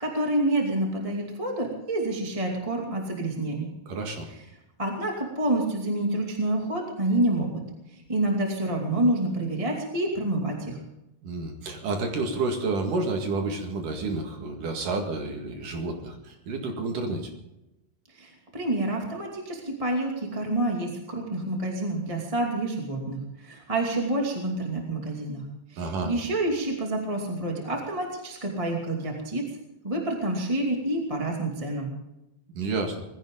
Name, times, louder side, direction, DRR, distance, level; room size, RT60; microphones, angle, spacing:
voice 1, 0.0-3.7 4.3-4.4 4.8-7.6 7.9-10.8 18.1-29.4 29.8-31.9, right 1 dB, 10° right, 0 dB, 1.9 m, -28 dB
voice 2, 3.9-4.3 11.2-17.3 25.8-26.1 32.6-33.0, right 3 dB, 65° right, 3 dB, 3.4 m, -30 dB
20.5 x 16.0 x 3.9 m, 0.92 s
omnidirectional pair, 4.1 m